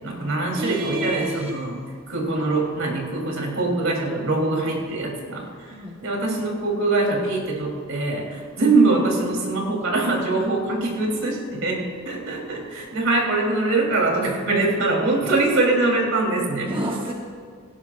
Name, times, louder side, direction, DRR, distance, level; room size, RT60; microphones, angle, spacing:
voice 1, 0.0-1.8 2.1-5.5 6.0-16.7, right 2 dB, 65° right, -1 dB, 3.3 m, -23 dB
voice 2, 0.6-1.6 5.7-6.0 16.7-17.1, equal, 25° right, -1 dB, 1.1 m, -29 dB
18.0 x 16.0 x 2.5 m, 2.2 s
head